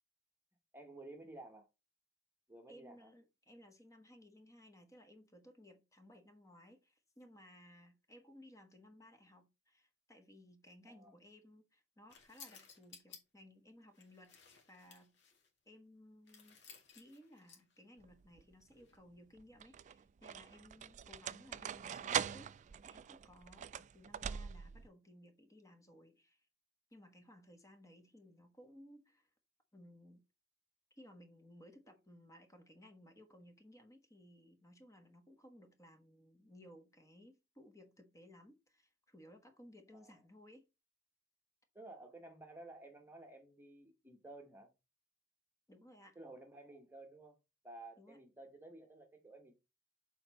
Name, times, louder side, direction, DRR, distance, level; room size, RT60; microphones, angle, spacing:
voice 1, 0.7-1.7 2.5-3.1 10.8-11.2 31.9-32.0 39.9-40.2 41.7-44.7 46.1-47.4 47.6-49.5, right 2 dB, 10° right, 1.2 m, -54 dB
voice 2, 2.7-14.3 14.7-15.1 15.6-22.5 22.8-26.5 26.9-29.3 29.7-30.2 30.9-40.6 45.7-46.2 48.0-48.2, left 1 dB, 15° left, 1.3 m, -60 dB
sound 1, 12.1-13.2 13.9-15.5 16.3-17.8 18.7-19.0, left 6 dB, 65° left, 2.2 m, -58 dB
sound 2, 18.0-18.5 19.4-24.9, right 8 dB, 40° right, 0.3 m, -42 dB
6.9 x 4.5 x 4.0 m
head